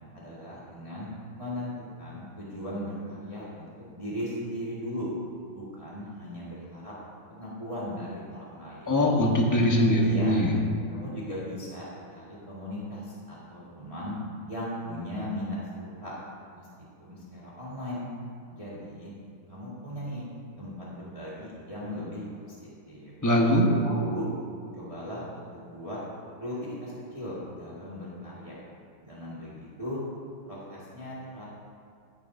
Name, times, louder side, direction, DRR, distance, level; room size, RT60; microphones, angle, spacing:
voice 1, 0.1-1.1 1.4-1.7 2.0-3.7 3.9-5.1 5.5-6.9 7.3-9.0 9.8-10.5 10.9-14.2 14.5-16.1 16.5-16.7 17.0-18.1 18.5-19.1 19.5-20.2 20.6-23.1 23.8-24.3 24.7-26.0 26.4-28.5 29.0-30.0 30.4-31.4, equal, 15° right, -8 dB, 1.9 m, -38 dB
voice 2, 8.9-10.5 23.2-23.7, equal, 10° left, -2 dB, 1.0 m, -22 dB
14.0 x 10.5 x 2.7 m, 2.4 s
omnidirectional pair, 2.2 m